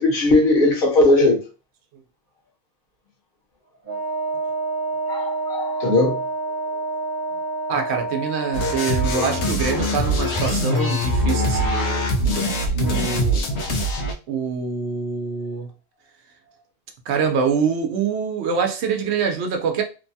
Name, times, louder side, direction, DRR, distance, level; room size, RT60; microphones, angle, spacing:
voice 1, 0.0-1.4 5.1-6.2, left 2 dB, 55° left, 1.1 m, -18 dB
Wind instrument woodwind instrument, 3.8-9.6, right 3 dB, 35° right, 1.3 m, -28 dB
voice 2, 7.7-12.1 12.8-13.4 14.3-15.7 17.1-19.8, right 6 dB, 80° right, 0.9 m, -25 dB
sound 1, 8.5-14.1, equal, 80° left, 0.9 m, -22 dB
2.9 x 2.2 x 2.6 m
omnidirectional pair, 1.1 m